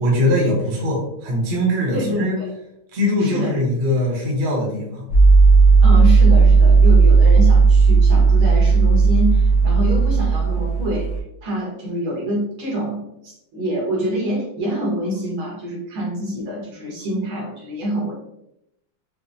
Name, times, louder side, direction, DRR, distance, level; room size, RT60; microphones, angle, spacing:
voice 1, 0.0-2.4 2.9-5.1, left 1 dB, 45° right, -2 dB, 0.9 m, -21 dB
voice 2, 1.9-2.5 3.2-3.6 5.8-18.1, equal, 80° right, -4 dB, 2.0 m, -26 dB
sound 1, 5.1-11.2, right 4 dB, 75° left, 0.7 m, -13 dB
4.8 x 2.0 x 2.6 m, 0.81 s
omnidirectional pair, 2.2 m